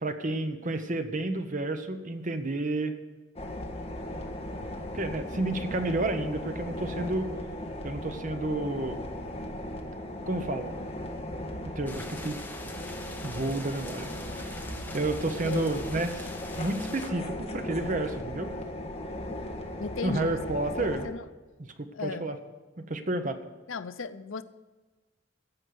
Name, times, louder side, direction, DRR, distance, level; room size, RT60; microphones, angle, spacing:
voice 1, 0.0-2.9 4.9-7.3 7.8-9.0 10.3-10.7 11.6-12.4 13.2-14.6 14.9-16.1 16.6-18.5 20.0-21.1 22.0-22.4 22.9-23.4, right 2 dB, 40° right, 8 dB, 0.9 m, -30 dB
sound 1, 3.4-21.1, left 1 dB, 30° left, 1.5 m, -37 dB
sound 2, 11.9-17.1, left 2 dB, 10° left, 1.1 m, -44 dB
voice 2, 19.8-20.4 20.8-21.3 21.9-22.3 23.7-24.4, left 4 dB, 85° left, 12 dB, 0.7 m, -36 dB
14.5 x 5.4 x 9.4 m, 1.3 s
head